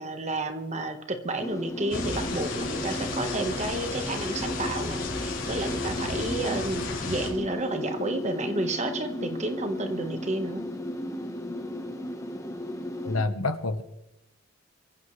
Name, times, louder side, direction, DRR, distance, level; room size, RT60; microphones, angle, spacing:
voice 1, 0.0-10.7, right 2 dB, 35° right, 7 dB, 1.4 m, -31 dB
sound 1, 1.4-13.2, left 1 dB, 15° left, 1.3 m, -34 dB
sound 2, 1.9-7.3, left 3 dB, 60° left, 4.9 m, -34 dB
voice 2, 13.0-13.8, left 2 dB, 90° left, 10 dB, 1.2 m, -27 dB
23.5 x 14.5 x 3.3 m, 0.88 s
head